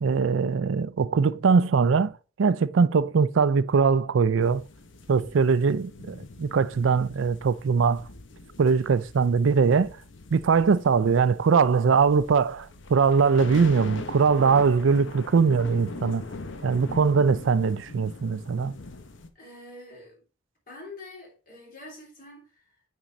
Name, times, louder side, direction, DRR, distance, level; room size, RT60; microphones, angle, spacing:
voice 1, 0.0-4.6 5.1-8.0 8.6-10.0 10.3-16.2 16.6-18.7, right 5 dB, 75° right, 0.4 m, -22 dB
sound 1, 4.4-19.3, left 3 dB, 70° left, 1.0 m, -42 dB
voice 2, 14.9-15.2 19.3-20.2 20.7-22.8, left 2 dB, 50° left, 3.3 m, -46 dB
9.1 x 3.7 x 4.0 m
head